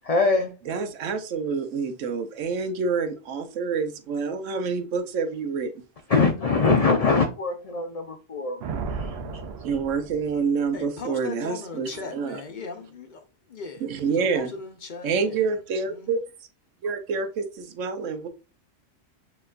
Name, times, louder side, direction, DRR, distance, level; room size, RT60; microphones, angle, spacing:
voice 1, 0.0-0.5 6.1-8.6 8.9-9.1, left 4 dB, 75° left, 0.3 m, -22 dB
voice 2, 0.7-5.7 9.6-12.4 13.8-14.5 15.0-16.2 16.8-18.3, right 5 dB, 90° right, 1.0 m, -27 dB
Thunder, 8.6-10.8, right 4 dB, 65° right, 0.8 m, -34 dB
voice 3, 10.7-13.2 13.5-13.9 14.2-15.5 15.9-16.2, left 4 dB, 50° left, 0.7 m, -38 dB
6.7 x 2.9 x 2.4 m
omnidirectional pair, 1.3 m